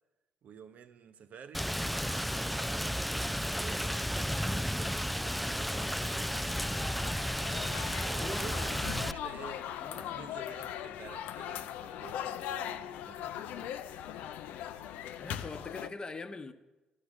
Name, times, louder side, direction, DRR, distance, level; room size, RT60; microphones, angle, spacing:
voice 1, 0.4-6.4 8.0-13.8, right 6 dB, 55° right, 0.8 m, -50 dB
Rain, 1.5-9.1, equal, ahead, 0.4 m, -33 dB
sound 1, 5.1-15.9, left 10 dB, 65° left, 0.5 m, -40 dB
voice 2, 8.1-9.0 9.8-10.3 15.2-16.5, left 3 dB, 30° left, 1.0 m, -43 dB
12.0 x 6.0 x 7.9 m
hypercardioid pair, 50°, 3 cm